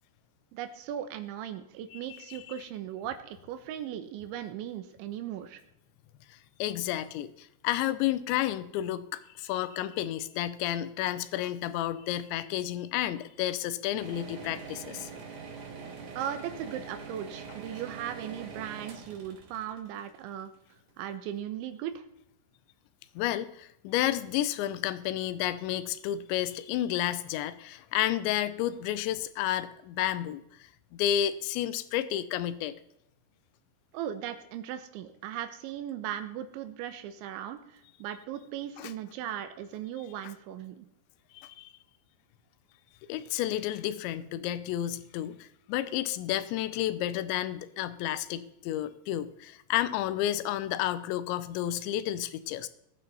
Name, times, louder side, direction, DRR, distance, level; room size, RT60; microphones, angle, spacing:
voice 1, 0.5-5.6 16.1-20.5 21.0-22.0 33.9-40.9, right 10 dB, 80° right, 9 dB, 3.3 m, -38 dB
voice 2, 6.6-15.1 23.2-32.8 38.8-38.9 41.3-41.7 43.1-52.7, left 12 dB, 80° left, 14 dB, 3.0 m, -31 dB
sound 1, 14.0-20.9, right 5 dB, 50° right, 3.0 m, -44 dB
20.5 x 9.1 x 4.2 m, 0.79 s
omnidirectional pair, 5.4 m